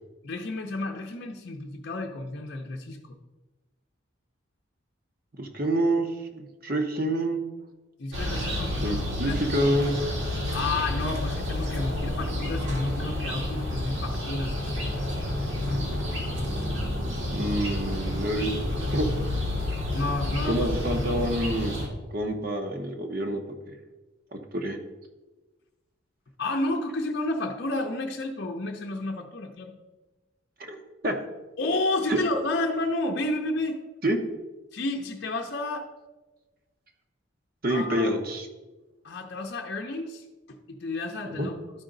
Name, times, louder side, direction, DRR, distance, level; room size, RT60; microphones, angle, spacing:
voice 1, 0.2-3.1 8.0-9.0 9.3-9.5 10.5-14.9 19.9-21.1 26.4-29.8 31.6-33.8 34.7-35.9 37.7-38.2 39.0-41.6, left 2 dB, 55° left, 1 dB, 0.6 m, -31 dB
voice 2, 5.4-7.4 8.8-10.0 17.3-18.5 18.9-19.1 20.4-21.7 22.1-23.4 24.5-24.8 30.6-31.2 32.1-32.2 34.0-34.2 37.6-38.5 41.3-41.5, right 1 dB, 50° right, 4 dB, 0.9 m, -27 dB
sound 1, 8.1-21.9, left 1 dB, 70° right, 1.9 m, -30 dB
12.0 x 5.0 x 3.8 m, 1.2 s
head